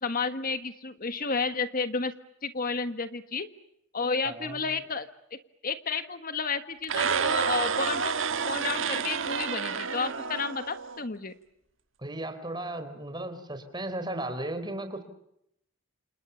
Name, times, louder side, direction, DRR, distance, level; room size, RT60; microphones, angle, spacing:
voice 1, 0.0-2.1 2.4-3.5 3.9-8.2 8.5-11.3, left 4 dB, 45° left, 10 dB, 1.5 m, -31 dB
voice 2, 4.2-4.8 12.0-15.0, right 1 dB, 20° right, 8 dB, 3.9 m, -35 dB
sound 1, 6.8-11.0, right 6 dB, 70° right, 1.6 m, -29 dB
29.5 x 28.0 x 6.9 m, 0.78 s
head